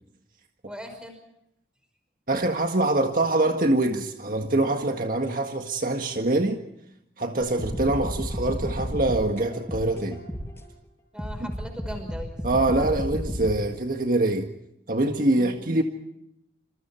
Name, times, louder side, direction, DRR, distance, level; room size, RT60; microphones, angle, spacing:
voice 1, 0.7-1.2 11.1-12.4 15.3-15.6, equal, 5° right, 5.5 m, -39 dB
voice 2, 2.3-6.6 7.2-10.2 11.4-11.5 12.4-14.5 14.9-15.8, right 2 dB, 50° right, 1.8 m, -24 dB
sound 1, 7.6-10.7 11.2-13.5, equal, 10° left, 7.0 m, -32 dB
28.0 x 27.5 x 4.5 m
head